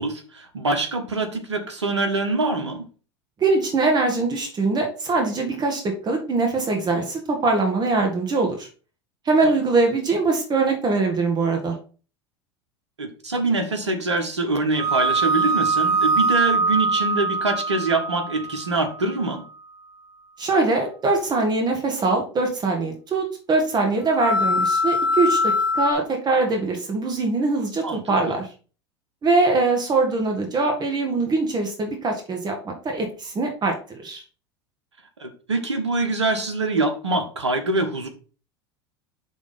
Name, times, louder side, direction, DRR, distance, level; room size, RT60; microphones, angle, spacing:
voice 1, 0.0-2.9 9.4-9.5 13.0-19.4 27.8-28.0 28.3-28.4 35.2-38.1, right 2 dB, 85° right, 6 dB, 1.4 m, -24 dB
voice 2, 3.4-8.7 9.3-11.8 20.4-28.5 29.2-33.8 34.0-34.2, right 3 dB, 30° right, 3 dB, 1.9 m, -22 dB
sound 1, 14.8-19.2 24.1-25.9, right 1 dB, 50° right, 1.3 m, -22 dB
6.1 x 3.7 x 5.7 m, 0.38 s
hypercardioid pair, 80°, 14 cm